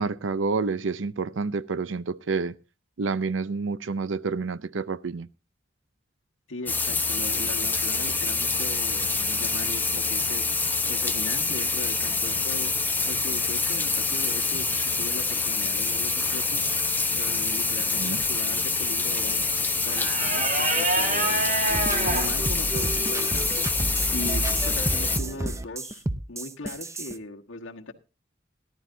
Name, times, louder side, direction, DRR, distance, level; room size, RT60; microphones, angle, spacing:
voice 1, 0.0-2.6 3.0-5.3 17.9-18.2, right 4 dB, 70° right, 0.6 m, -29 dB
voice 2, 6.5-10.4 10.9-12.7 13.0-16.6 17.1-19.5 19.8-21.4 21.9-23.7 24.1-27.9, left 2 dB, 80° left, 1.5 m, -39 dB
sound 1, 6.7-25.2, left 4 dB, 10° left, 0.9 m, -26 dB
sound 2, 7.2-23.8, right 2 dB, 40° right, 2.6 m, -34 dB
sound 3, 21.7-27.1, right 1 dB, 15° right, 0.7 m, -30 dB
18.5 x 11.5 x 2.7 m
head